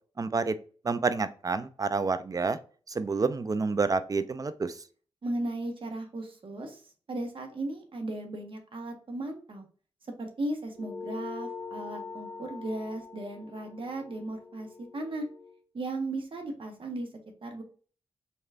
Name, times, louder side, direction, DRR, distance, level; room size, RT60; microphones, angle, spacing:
voice 1, 0.2-0.6 0.8-2.6 2.9-4.8, right 4 dB, 35° right, 13 dB, 0.4 m, -28 dB
voice 2, 5.2-6.8 7.1-9.7 10.2-15.3 15.7-17.1 17.4-17.6, right 2 dB, 55° right, 4 dB, 1.2 m, -36 dB
sound 1, 10.8-15.6, left 4 dB, 30° left, 0.6 m, -43 dB
4.1 x 3.3 x 2.4 m, 0.41 s
cardioid pair, 50°, 11 cm